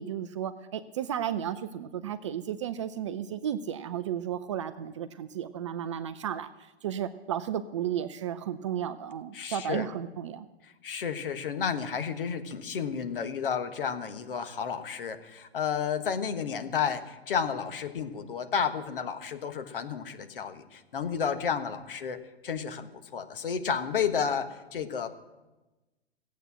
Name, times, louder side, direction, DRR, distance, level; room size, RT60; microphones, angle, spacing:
voice 1, 0.0-10.5, right 9 dB, 30° right, 12 dB, 0.4 m, -33 dB
voice 2, 9.3-9.8 10.8-25.1, left 7 dB, 55° left, 9 dB, 1.4 m, -32 dB
16.0 x 8.2 x 7.5 m, 1.1 s
figure-of-eight pair, 115°, 33 cm